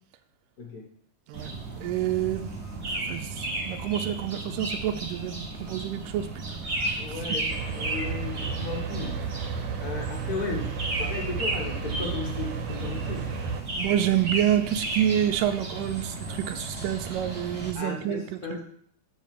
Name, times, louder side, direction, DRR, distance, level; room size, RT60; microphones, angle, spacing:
voice 1, 0.6-0.9 7.0-7.5 7.7-9.2 9.8-10.7 11.0-13.3 17.7-18.6, left 4 dB, 85° left, 1 dB, 0.8 m, -35 dB
sound 1, 1.3-17.7, right 2 dB, 50° right, 0.8 m, -34 dB
voice 2, 1.3-2.5 2.9-7.4 13.8-18.6, right 11 dB, 90° right, 6 dB, 2.3 m, -28 dB
sound 2, 7.5-13.6, right 6 dB, 70° right, 2.1 m, -33 dB
7.9 x 5.1 x 7.5 m, 0.64 s
omnidirectional pair, 3.7 m